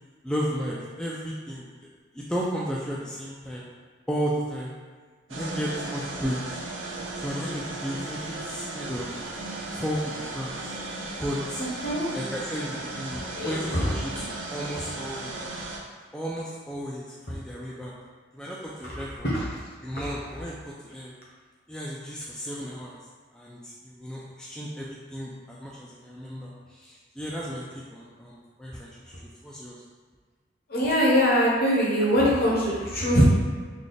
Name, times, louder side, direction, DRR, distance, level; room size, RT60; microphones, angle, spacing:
voice 1, 0.2-1.9 2.1-3.6 4.1-4.7 5.3-6.6 7.2-9.2 9.7-10.7 11.2-11.6 12.1-15.3 16.1-17.9 18.3-19.3 19.8-21.1 21.7-23.0 23.3-27.6 27.9-28.9 29.4-29.8, equal, 5° left, -5 dB, 0.3 m, -34 dB
sound 1, 5.3-15.8, right 2 dB, 80° right, 0.5 m, -36 dB
voice 2, 11.6-12.0 13.3-13.8 19.2-19.5 19.9-20.0 30.7-33.2, equal, 50° left, -4 dB, 0.9 m, -22 dB
3.3 x 2.3 x 3.9 m, 1.6 s
head